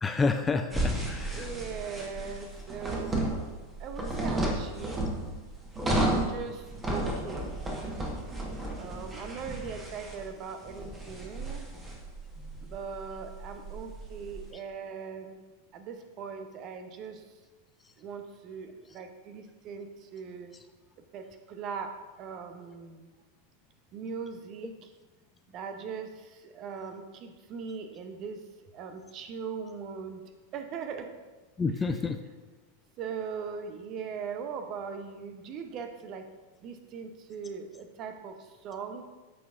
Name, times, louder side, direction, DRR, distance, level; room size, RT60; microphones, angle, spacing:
voice 1, 0.0-1.5 31.6-32.2, left 4 dB, 15° left, 7 dB, 0.4 m, -29 dB
sound 1, 0.7-14.4, right 1 dB, 15° right, 1.5 m, -33 dB
voice 2, 1.3-3.3 3.8-5.1 6.1-7.6 8.7-11.7 12.6-15.4 15.7-17.2 18.0-20.5 21.1-23.1 23.9-24.9 25.5-28.4 28.7-30.2 30.5-31.1 33.0-36.3 36.6-38.4 38.6-39.0, right 6 dB, 35° right, 7 dB, 0.8 m, -40 dB
13.5 x 4.6 x 2.6 m, 1.2 s
figure-of-eight pair, 90°, 0 cm